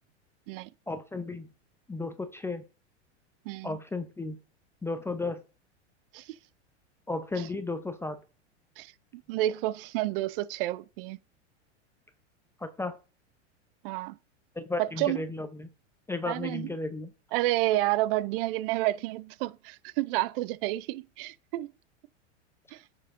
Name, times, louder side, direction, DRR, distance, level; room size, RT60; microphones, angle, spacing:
voice 1, 0.9-1.5 1.9-2.6 3.6-4.4 4.8-5.4 7.1-8.2 12.6-13.0 14.6-15.7 16.1-17.1, left 3 dB, 5° left, 0.6 m, -34 dB
voice 2, 3.5-3.8 6.1-6.4 7.4-7.5 8.8-11.2 13.8-14.2 14.8-15.2 16.3-16.7 17.3-21.7 22.7-22.8, right 16 dB, 50° right, 0.6 m, -30 dB
8.9 x 4.6 x 3.7 m
hypercardioid pair, 110°, 35 cm